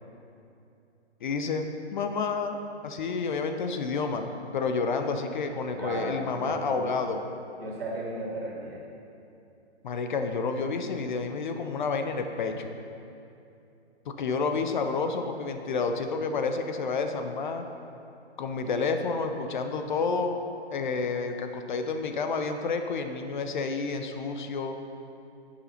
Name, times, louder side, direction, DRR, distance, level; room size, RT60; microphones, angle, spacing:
voice 1, 1.2-2.6 2.8-7.2 9.8-12.7 14.1-17.6 18.4-20.4 20.7-24.8, left 4 dB, 45° left, 7 dB, 0.7 m, -30 dB
voice 2, 5.7-7.0 7.6-8.8, right 1 dB, 60° right, -3 dB, 2.3 m, -35 dB
9.8 x 5.8 x 5.7 m, 2.7 s
figure-of-eight pair, 135°, 34 cm